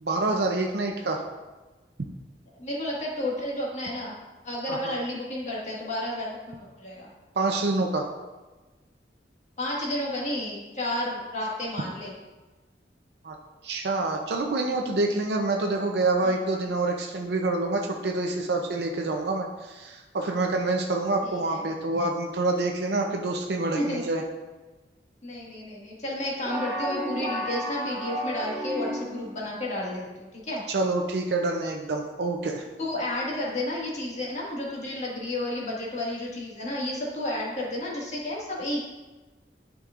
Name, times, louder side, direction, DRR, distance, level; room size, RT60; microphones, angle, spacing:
voice 1, 0.0-1.2 4.7-5.0 7.4-8.1 13.2-13.4 13.6-24.2 30.7-32.6, right 2 dB, 70° right, 1 dB, 0.6 m, -27 dB
voice 2, 2.6-4.1 4.4-7.1 9.6-12.1 16.2-16.4 21.2-21.7 23.8-24.0 25.2-30.6 32.8-38.8, left 1 dB, 40° left, -4 dB, 1.7 m, -31 dB
sound 1, 26.5-29.3, equal, 5° left, 2.3 m, -32 dB
11.0 x 5.1 x 2.5 m, 1.2 s
head